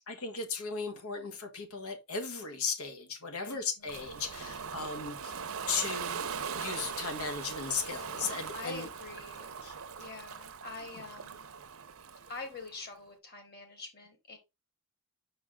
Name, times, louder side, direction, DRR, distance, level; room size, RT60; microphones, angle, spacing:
voice 1, 0.1-5.4 5.7-6.3 6.5-8.9 9.6-9.7, left 5 dB, 85° left, 1.6 m, -36 dB
voice 2, 3.4-4.1 8.1-8.2 8.5-9.5 10.0-11.5 12.3-14.4, left 3 dB, 45° left, 2.5 m, -46 dB
Ocean, 3.9-12.7, right 6 dB, 70° right, 0.7 m, -40 dB
6.4 x 4.8 x 3.6 m
head